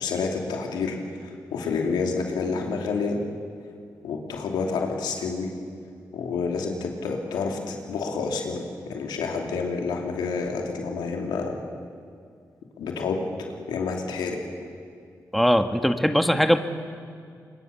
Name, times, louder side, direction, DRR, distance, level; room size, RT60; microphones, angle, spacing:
voice 1, 0.0-3.2 4.0-5.5 6.1-8.6 8.9-11.5 12.8-13.3 13.7-14.4, left 4 dB, 90° left, 2 dB, 2.8 m, -28 dB
voice 2, 15.3-16.6, equal, ahead, 7 dB, 1.8 m, -20 dB
25.5 x 22.0 x 7.0 m, 2.2 s
supercardioid pair, 45°, 7 cm